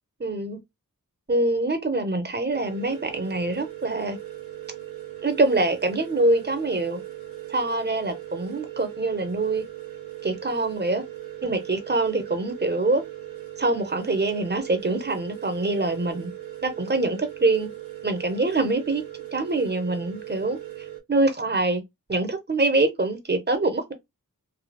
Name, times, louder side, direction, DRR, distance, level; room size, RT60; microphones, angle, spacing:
voice 1, 0.2-0.6 1.3-4.2 5.2-7.0 7.5-9.6 10.2-11.0 11.4-13.0 13.6-16.3 16.6-17.7 18.0-19.0 19.3-20.6 21.1-21.8 22.1-23.9, right 2 dB, 30° right, 0.8 m, -24 dB
sound 1, 2.5-21.0, right 14 dB, 75° right, 0.9 m, -39 dB
3.3 x 2.2 x 2.3 m
wide cardioid pair, 60°, 34 cm